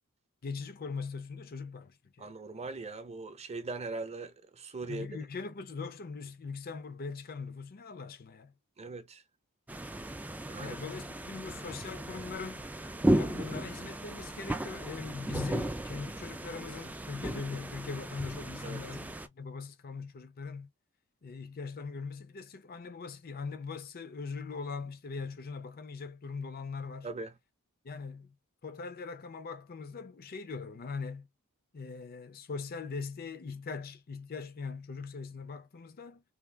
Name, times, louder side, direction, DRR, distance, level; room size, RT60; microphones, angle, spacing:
voice 1, 0.4-2.3 4.9-8.5 10.6-12.7 13.1-20.7 21.2-27.1 27.8-28.4 28.6-31.3 31.7-36.2, left 4 dB, 45° left, 0.5 m, -41 dB
voice 2, 2.2-5.1 8.8-9.2 10.5-10.8 18.6-18.8 27.0-27.3, right 3 dB, 30° right, 0.7 m, -40 dB
sound 1, 9.7-19.3, right 1 dB, 5° right, 0.3 m, -35 dB
3.5 x 2.3 x 3.3 m
head